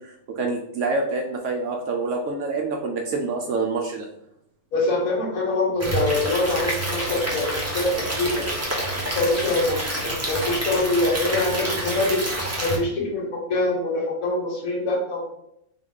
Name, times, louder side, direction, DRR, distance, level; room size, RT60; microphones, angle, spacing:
voice 1, 0.4-4.1, right 3 dB, 65° right, 1 dB, 0.8 m, -26 dB
voice 2, 4.7-8.5 9.0-9.8 10.0-12.2 12.6-15.2, left 2 dB, 70° left, -1 dB, 1.5 m, -24 dB
Stream / Liquid, 5.8-12.8, right 1 dB, 15° right, 0.8 m, -28 dB
3.8 x 3.0 x 3.5 m, 0.77 s
omnidirectional pair, 1.6 m